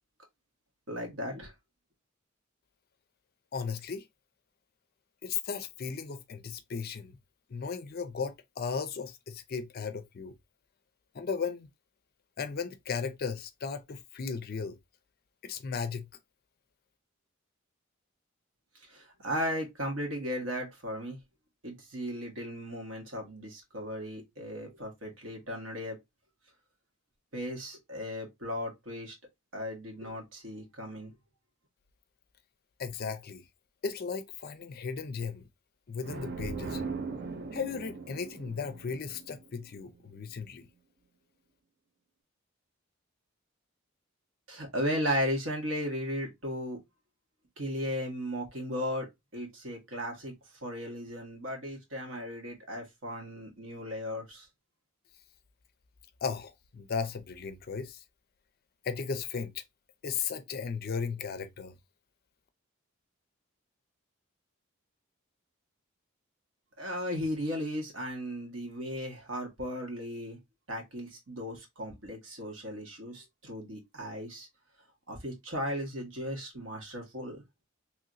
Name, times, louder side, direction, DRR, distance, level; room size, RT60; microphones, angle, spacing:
voice 1, 0.9-1.5 18.9-21.2 21.6-26.0 27.3-29.1 29.5-31.1 44.5-46.8 47.6-49.1 49.3-50.3 50.6-54.5 66.8-70.4 70.7-74.5 75.1-77.4, equal, 65° right, 1.4 m, -36 dB
voice 2, 3.5-4.1 5.2-7.2 7.5-10.3 11.1-11.7 12.4-14.8 15.4-16.1 32.8-33.4 33.8-35.5 35.9-36.8 37.5-40.7 56.2-58.0 58.8-59.6 60.0-61.7, left 5 dB, 50° left, 0.5 m, -36 dB
sound 1, 36.0-39.7, right 4 dB, 50° right, 0.6 m, -39 dB
3.0 x 3.0 x 2.5 m
head